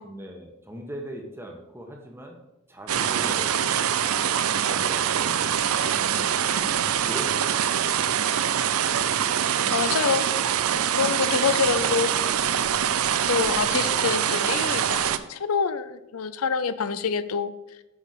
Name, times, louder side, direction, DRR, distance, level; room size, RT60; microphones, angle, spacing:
voice 1, 0.0-2.4 2.7-3.8 4.5-5.5 5.8-7.7, equal, 10° right, 2 dB, 1.2 m, -40 dB
sound 1, 2.9-15.2, right 9 dB, 85° right, 0.5 m, -24 dB
voice 2, 9.7-10.3 10.9-12.1 13.3-17.5, left 6 dB, 85° left, 14 dB, 0.5 m, -26 dB
8.5 x 5.2 x 6.7 m, 0.93 s
head